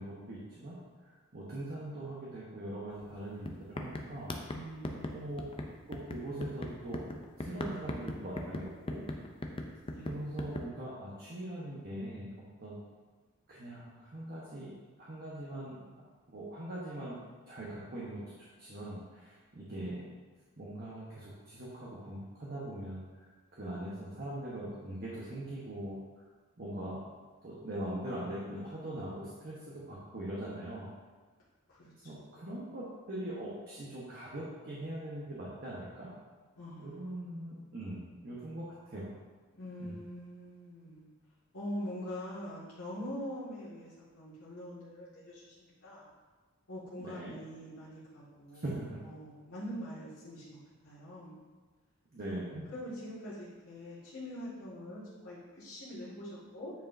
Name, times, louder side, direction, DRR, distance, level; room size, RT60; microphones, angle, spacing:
voice 1, 0.0-4.3 5.1-5.4 5.9-7.1 7.4-9.0 10.1-12.3 12.6-12.8 13.5-14.7 15.0-15.8 16.3-17.2 17.5-20.0 20.6-23.3 23.6-26.0 26.6-27.0 27.4-30.9 32.0-36.1 36.8-39.1 39.8-39.9 47.0-47.3 48.5-48.8 52.1-52.6, right 1 dB, 45° right, -7 dB, 1.0 m, -41 dB
sound 1, 3.0-3.2 3.4-10.7, left 1 dB, 25° left, 0.4 m, -39 dB
voice 2, 4.5-5.5 9.9-10.2 31.7-32.5 36.6-37.5 39.5-41.1 41.5-46.1 46.7-48.7 49.0-50.6 50.8-51.3 52.7-56.7, equal, 85° left, -11 dB, 1.9 m, -44 dB
9.1 x 4.7 x 2.6 m, 1.4 s
head